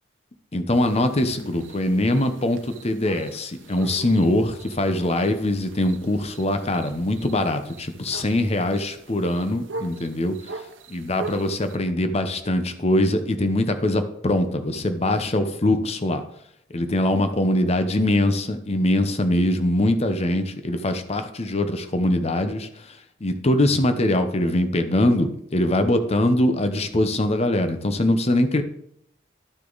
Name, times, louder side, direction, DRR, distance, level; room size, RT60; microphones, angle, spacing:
voice 1, 0.5-10.6 10.9-16.2 16.7-28.6, left 1 dB, 35° left, 9 dB, 0.8 m, -22 dB
sound 1, 0.7-11.8, right 3 dB, 85° right, 0.9 m, -41 dB
12.0 x 6.4 x 4.0 m, 0.71 s
head